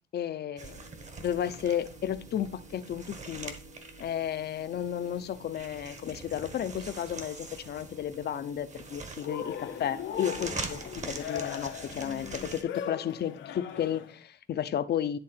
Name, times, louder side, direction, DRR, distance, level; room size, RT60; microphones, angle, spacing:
voice 1, 0.1-0.8 1.2-3.6 4.0-15.2, left 10 dB, 60° left, 13 dB, 0.7 m, -33 dB
sound 1, 0.6-12.6, right 3 dB, 40° right, 1.3 m, -43 dB
Cheering, 9.2-14.2, left 8 dB, 85° left, 1.0 m, -39 dB
10.5 x 3.7 x 5.8 m, 0.35 s
cardioid pair, 140°, 19 cm